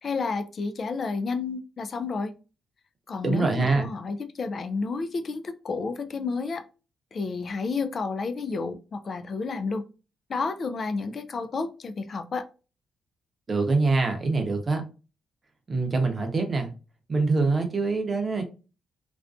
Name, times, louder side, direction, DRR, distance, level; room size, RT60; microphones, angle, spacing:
voice 1, 0.0-2.3 3.1-6.6 7.1-9.8 10.3-12.5, left 4 dB, 50° left, 9 dB, 0.3 m, -31 dB
voice 2, 3.2-3.9 13.5-14.8 15.7-16.7 17.1-18.4, right 3 dB, 40° right, 5 dB, 0.7 m, -24 dB
2.4 x 2.2 x 2.4 m, 0.32 s
supercardioid pair, 60°, 0 cm